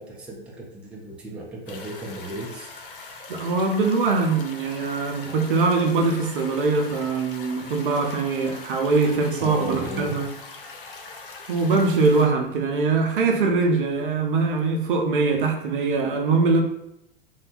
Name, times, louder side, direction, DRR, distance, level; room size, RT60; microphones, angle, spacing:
voice 1, 0.0-2.7 9.4-10.2, right 1 dB, 5° right, -3 dB, 0.3 m, -34 dB
sound 1, 1.7-12.3, left 3 dB, 65° left, 0.5 m, -41 dB
voice 2, 3.3-10.3 11.5-16.6, right 4 dB, 60° right, 4 dB, 0.5 m, -22 dB
2.7 x 2.2 x 2.4 m, 0.80 s
figure-of-eight pair, 90°, 29 cm